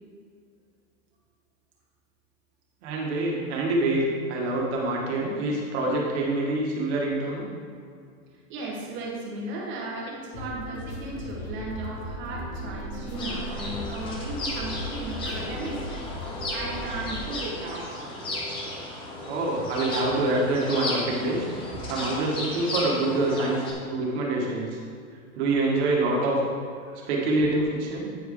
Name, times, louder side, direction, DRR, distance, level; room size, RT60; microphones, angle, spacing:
voice 1, 2.8-4.0 4.3-7.4 19.3-21.4 21.9-23.6 23.9-24.8 25.3-26.4 27.1-28.1, right 2 dB, 50° right, -2 dB, 1.8 m, -25 dB
voice 2, 8.5-15.8 16.5-17.9 18.3-18.4 21.7-21.8 22.8-22.9 23.9-24.4 26.8-27.1, right 2 dB, 30° right, -3 dB, 1.5 m, -36 dB
sound 1, 10.3-17.3, left 1 dB, 40° left, 1.3 m, -37 dB
sound 2, 13.1-23.7, left 1 dB, 15° left, 0.5 m, -35 dB
9.0 x 4.6 x 3.7 m, 2.2 s
supercardioid pair, 155°, 42 cm